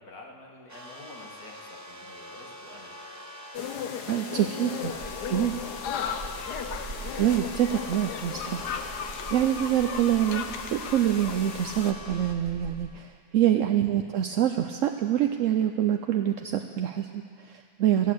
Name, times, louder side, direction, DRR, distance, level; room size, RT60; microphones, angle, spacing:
voice 1, 0.0-3.0 4.7-5.6 13.5-13.6, left 2 dB, 60° left, -1 dB, 2.1 m, -48 dB
sound 1, 0.7-12.3, left 1 dB, 25° right, 0.4 m, -44 dB
sound 2, 3.5-11.9, left 8 dB, 75° left, 1.3 m, -36 dB
voice 2, 4.1-4.9 5.3-5.5 7.2-18.1, right 11 dB, 75° right, 5 dB, 0.7 m, -26 dB
sound 3, 4.8-13.1, right 3 dB, 50° right, 2.0 m, -44 dB
15.0 x 8.4 x 7.8 m, 2.3 s
omnidirectional pair, 1.8 m